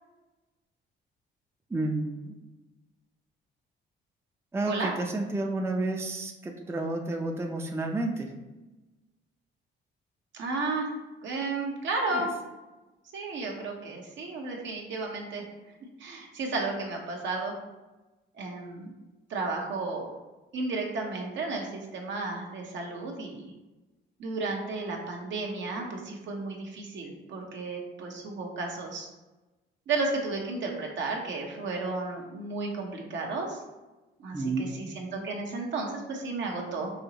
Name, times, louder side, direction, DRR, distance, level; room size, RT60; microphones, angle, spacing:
voice 1, 1.7-2.3 4.5-8.3 34.3-34.8, right 2 dB, 15° right, 2 dB, 0.5 m, -30 dB
voice 2, 10.3-10.9 11.2-12.3 13.1-15.4 16.0-17.5 18.4-18.9 19.3-20.1 20.5-23.5 24.2-29.1 29.9-33.6 34.2-36.9, right 3 dB, 70° right, 0 dB, 1.0 m, -33 dB
5.5 x 3.0 x 2.9 m, 1.1 s
cardioid pair, 90°, 20 cm